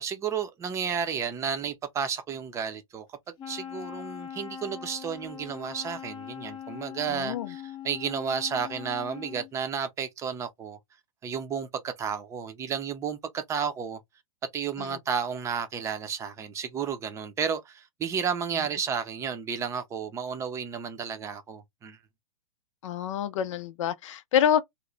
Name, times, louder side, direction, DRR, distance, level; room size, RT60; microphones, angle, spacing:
voice 1, 0.0-3.1 3.5-10.8 11.2-14.0 14.5-22.0, right 7 dB, 15° right, 0.6 m, -32 dB
Wind instrument woodwind instrument, 3.4-9.5, left 9 dB, 25° left, 0.7 m, -41 dB
voice 2, 7.1-7.5 14.8-15.0 22.8-24.6, left 9 dB, 60° left, 0.5 m, -27 dB
3.1 x 2.1 x 3.7 m
hypercardioid pair, 140°, 18 cm